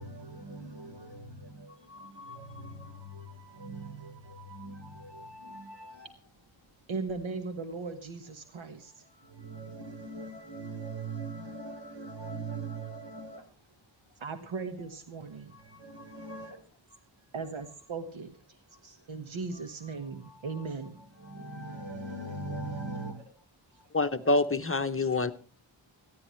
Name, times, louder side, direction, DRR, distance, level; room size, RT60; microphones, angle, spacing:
voice 1, 0.0-6.1 8.6-8.7 9.1-13.4 15.5-16.6 18.8-19.0 19.5-19.6 20.2-20.7 21.2-23.2 25.2-25.3, right 2 dB, 65° right, 4.1 m, -42 dB
voice 2, 6.9-9.0 14.2-15.5 17.3-18.3 19.1-21.0, right 4 dB, 80° right, 1.6 m, -37 dB
voice 3, 23.9-25.3, left 2 dB, 30° left, 0.8 m, -26 dB
21.0 x 14.0 x 3.2 m
wide cardioid pair, 105°, 47 cm